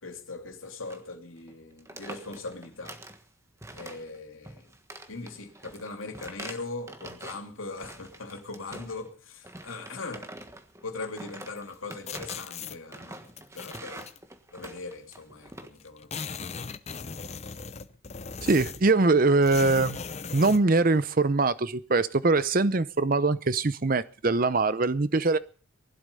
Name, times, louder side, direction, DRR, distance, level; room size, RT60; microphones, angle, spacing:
voice 1, 0.0-3.0 3.7-4.7 5.1-10.3 10.8-14.1 14.5-16.4, left 3 dB, 80° left, 2.9 m, -40 dB
sound 1, 0.9-1.1 1.4-1.5 1.8-3.2 3.6-4.2 4.4-7.5 7.8-9.1 9.4-15.7, right 1 dB, 15° right, 1.4 m, -45 dB
sound 2, 12.1-12.8 13.4-14.2 15.1-15.2 15.5-15.6 15.8-18.9 19.4-20.6, left 5 dB, 30° left, 0.7 m, -38 dB
voice 2, 18.4-20.0 20.3-25.4, right 3 dB, 45° right, 0.7 m, -23 dB
20.0 x 12.0 x 5.4 m
head